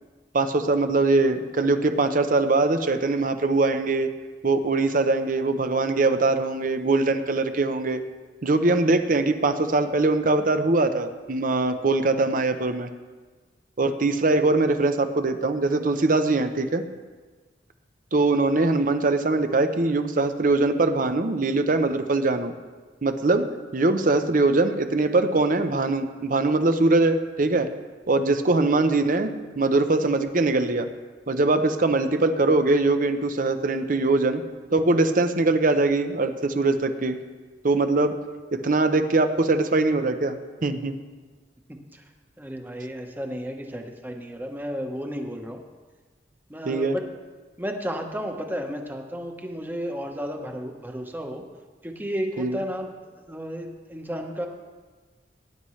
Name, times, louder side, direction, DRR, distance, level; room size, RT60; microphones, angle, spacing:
voice 1, 0.3-4.1 4.4-8.0 8.4-12.9 13.8-16.8 18.1-22.5 23.0-23.5 23.7-27.7 28.1-29.3 29.6-30.9 31.3-34.4 34.7-37.2 37.6-38.2 38.5-41.0 46.7-47.0 52.4-52.6, right 2 dB, 50° right, 8 dB, 0.8 m, -22 dB
voice 2, 41.7-42.0 42.4-45.6 46.5-47.0 47.6-51.4 51.8-52.9 53.3-54.5, equal, 10° right, 2 dB, 1.1 m, -33 dB
18.5 x 10.0 x 3.2 m, 1.4 s
head